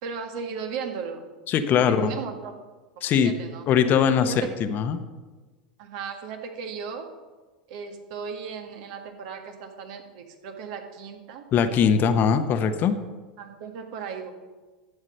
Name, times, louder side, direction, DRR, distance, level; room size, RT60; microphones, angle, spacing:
voice 1, 0.0-1.3 1.7-2.5 2.9-3.7 4.2-4.7 5.8-7.1 7.7-11.5 13.4-14.3, right 6 dB, 60° right, 5 dB, 1.6 m, -36 dB
voice 2, 1.5-2.1 3.0-3.3 3.7-4.3 4.6-5.0 11.5-13.0, left 7 dB, 40° left, 9 dB, 1.0 m, -21 dB
11.5 x 7.9 x 6.6 m, 1.3 s
hypercardioid pair, 90°, 5 cm